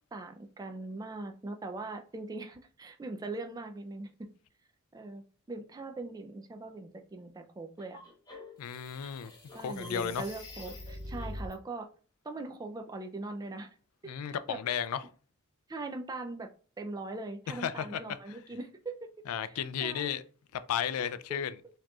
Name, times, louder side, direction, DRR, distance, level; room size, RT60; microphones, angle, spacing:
voice 1, 0.1-4.3 4.9-8.0 9.5-11.9 12.2-13.7 14.0-14.2 14.5-14.6 15.7-16.5 16.8-19.1 19.4-20.1 21.0-21.4, right 2 dB, 15° right, 0.3 m, -41 dB
sound 1, 7.8-11.5, left 1 dB, 20° left, 0.9 m, -44 dB
voice 2, 8.6-9.3 9.6-10.2 14.0-15.0 17.5-18.4 19.3-20.2 20.5-21.5, left 8 dB, 80° left, 0.3 m, -34 dB
4.6 x 2.9 x 2.3 m
head